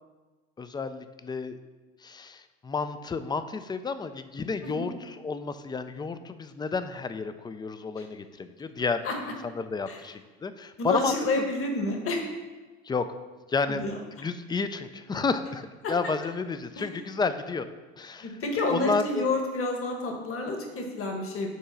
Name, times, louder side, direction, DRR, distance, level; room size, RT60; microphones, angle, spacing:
voice 1, 0.6-1.6 2.0-9.0 9.4-11.5 12.8-13.1 13.5-13.8 14.2-17.7 18.0-18.4 18.7-19.3, left 4 dB, 15° left, 10 dB, 0.3 m, -31 dB
voice 2, 10.8-12.2 13.7-14.0 15.8-15.9 16.8-16.9 18.2-21.5, left 2 dB, 40° left, 2 dB, 1.4 m, -29 dB
5.5 x 3.8 x 5.8 m, 1.2 s
hypercardioid pair, 80°, 33 cm